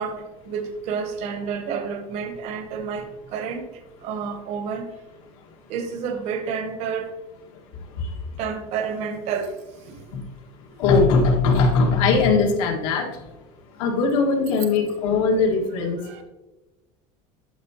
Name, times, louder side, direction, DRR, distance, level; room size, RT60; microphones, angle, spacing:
voice 1, 0.0-4.9 5.7-7.1 8.4-10.1 16.0-16.2, right 6 dB, 40° right, 7 dB, 0.8 m, -30 dB
voice 2, 10.8-13.3 13.7-16.0, left 4 dB, 80° left, 1 dB, 1.6 m, -20 dB
11.0 x 5.8 x 2.8 m, 1.1 s
cardioid pair, 175°, 17 cm